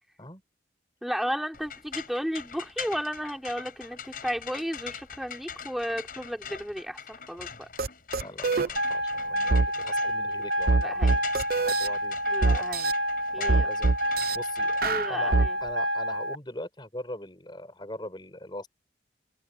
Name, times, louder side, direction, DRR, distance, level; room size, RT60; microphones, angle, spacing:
voice 1, 1.0-7.7 10.8-11.2 12.3-12.9 13.3-13.7 14.8-15.6, equal, ahead, 5.4 m, -33 dB
sound 1, 1.5-15.7, left 7 dB, 50° left, 7.9 m, -43 dB
sound 2, 7.8-7.9 8.1-8.7 9.5-9.7 10.7-11.9 12.4-12.9 13.5-14.4 14.8-15.5, right 3 dB, 55° right, 0.8 m, -23 dB
voice 2, 8.2-11.0 11.6-12.2 12.5-12.6 13.4-14.8 15.1-18.7, left 1 dB, 25° left, 4.7 m, -42 dB
sound 3, 8.8-16.4, equal, 75° right, 1.6 m, -29 dB
head